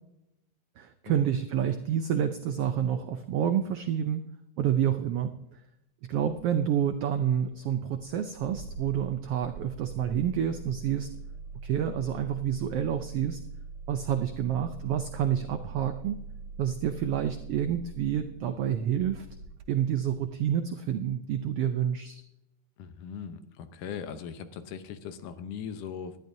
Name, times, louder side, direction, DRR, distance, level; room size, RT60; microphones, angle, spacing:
voice 1, 0.8-4.2 4.6-5.3 6.1-11.1 11.6-13.4 13.9-16.2 16.6-19.3 19.7-22.2, right 9 dB, 90° right, 7 dB, 1.3 m, -28 dB
Engine starting, 6.2-20.3, right 4 dB, 65° right, 2.2 m, -43 dB
voice 2, 22.8-26.2, left 7 dB, 85° left, 10 dB, 2.4 m, -39 dB
19.5 x 12.0 x 2.7 m, 0.84 s
omnidirectional pair, 3.5 m